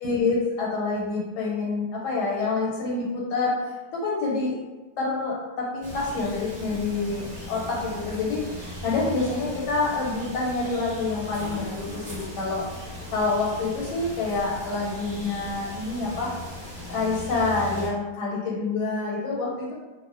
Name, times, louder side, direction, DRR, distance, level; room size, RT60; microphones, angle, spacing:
voice 1, 0.0-4.6 5.0-16.3 16.9-19.7, left 3 dB, 85° left, -4 dB, 1.2 m, -27 dB
sound 1, 5.8-17.9, left 1 dB, 20° right, 0.8 m, -38 dB
2.7 x 2.1 x 2.4 m, 1.3 s
omnidirectional pair, 1.7 m